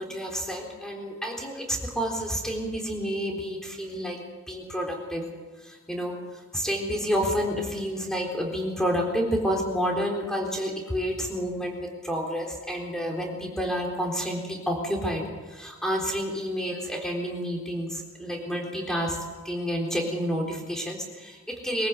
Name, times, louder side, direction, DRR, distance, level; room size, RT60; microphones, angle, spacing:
voice 1, 0.0-4.2 4.5-5.2 5.6-6.2 6.5-15.2 15.5-19.2 19.4-21.9, equal, 5° left, 1 dB, 3.8 m, -29 dB
23.5 x 14.5 x 8.0 m, 1.3 s
head